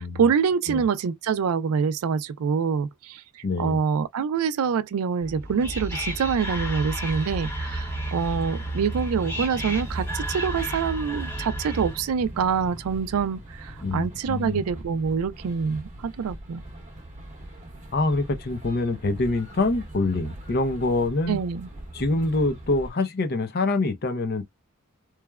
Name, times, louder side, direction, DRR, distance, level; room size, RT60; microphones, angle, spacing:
voice 1, 0.0-3.2 3.6-16.6 21.3-21.7, right 6 dB, 80° right, 0.4 m, -26 dB
voice 2, 3.4-3.8 13.8-14.6 17.9-21.4 21.9-24.4, left 2 dB, 45° left, 0.6 m, -25 dB
Whispering, 5.2-12.1, right 1 dB, 10° left, 0.9 m, -32 dB
sound 1, 7.0-22.9, right 1 dB, 35° right, 0.9 m, -41 dB
3.1 x 2.1 x 2.2 m
head